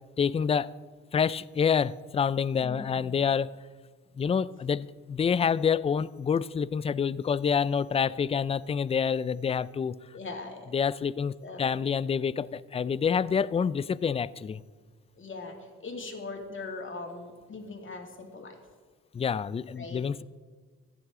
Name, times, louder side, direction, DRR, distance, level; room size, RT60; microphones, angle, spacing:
voice 1, 0.2-0.7 1.1-3.6 4.2-9.9 10.7-14.6 19.1-20.2, left 6 dB, 20° left, 0.3 m, -27 dB
voice 2, 2.6-3.3 10.1-10.7 11.4-11.7 15.2-18.6 19.8-20.1, left 3 dB, 40° left, 2.5 m, -40 dB
15.0 x 9.6 x 3.7 m
supercardioid pair, 65°, 31 cm